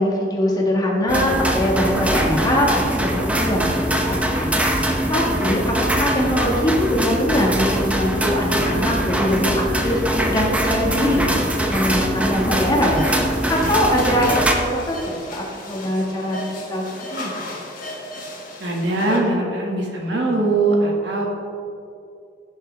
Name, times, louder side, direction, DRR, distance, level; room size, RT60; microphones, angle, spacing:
voice 1, 0.0-4.5 5.1-11.2 11.6-13.0 13.5-16.8 17.1-17.3, equal, 20° left, -2 dB, 1.6 m, -22 dB
sound 1, 1.1-14.5, equal, 10° right, 0.8 m, -22 dB
sound 2, 12.9-19.2, left 1 dB, 50° left, 1.8 m, -34 dB
voice 2, 18.6-21.3, right 2 dB, 70° right, -1 dB, 1.8 m, -21 dB
16.0 x 6.6 x 3.3 m, 2.6 s
head